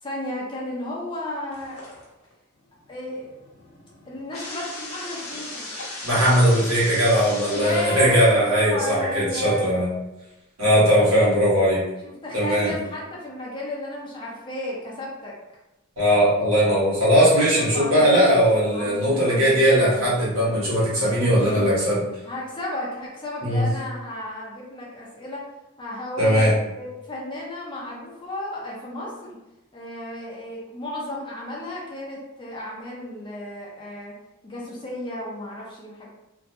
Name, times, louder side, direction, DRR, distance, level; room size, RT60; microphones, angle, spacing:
voice 1, 0.0-2.0 2.9-3.4 4.1-5.7 7.5-9.7 10.7-11.1 12.0-15.3 17.6-18.2 18.7-20.6 21.0-21.7 22.3-25.4 25.8-26.5 26.8-29.3 29.7-34.1 34.4-36.1, left 1 dB, 25° left, -4 dB, 0.6 m, -34 dB
sound 1, 1.5-2.3 2.7-8.5, left 2 dB, 80° left, 0.6 m, -37 dB
voice 2, 6.0-9.9 10.6-11.8 12.3-12.7 16.0-22.0 23.4-23.7 26.2-26.5, equal, 80° right, -7 dB, 1.2 m, -19 dB
2.6 x 2.1 x 2.6 m, 0.96 s
head